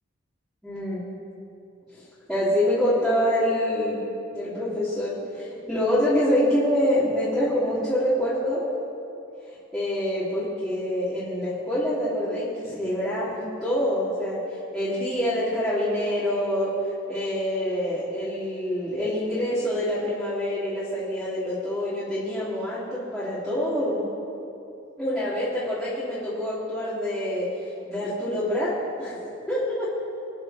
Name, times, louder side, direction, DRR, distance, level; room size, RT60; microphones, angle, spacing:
voice 1, 0.6-1.0 1.9-8.6 9.7-24.0 25.0-27.5 27.9-28.7 29.0-29.2 29.5-29.9, equal, ahead, -14 dB, 3.2 m, -26 dB
25.5 x 9.6 x 4.4 m, 2.8 s
head